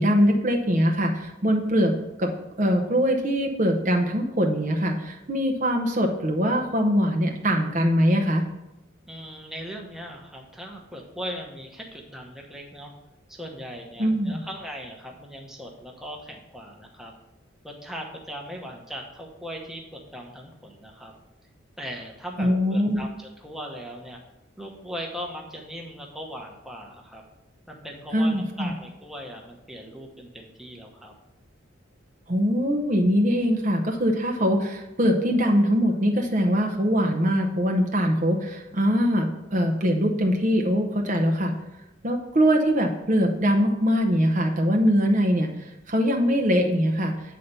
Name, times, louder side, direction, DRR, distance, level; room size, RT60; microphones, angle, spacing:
voice 1, 0.0-2.3 2.6-8.4 14.0-14.4 22.4-23.0 28.1-28.7 32.3-41.5 42.0-47.1, equal, 40° right, 2 dB, 0.8 m, -22 dB
voice 2, 9.1-12.9 13.3-17.1 17.6-21.1 21.8-24.2 24.6-27.2 27.7-31.1, equal, ahead, 0 dB, 0.9 m, -39 dB
8.4 x 4.2 x 6.7 m, 0.94 s
head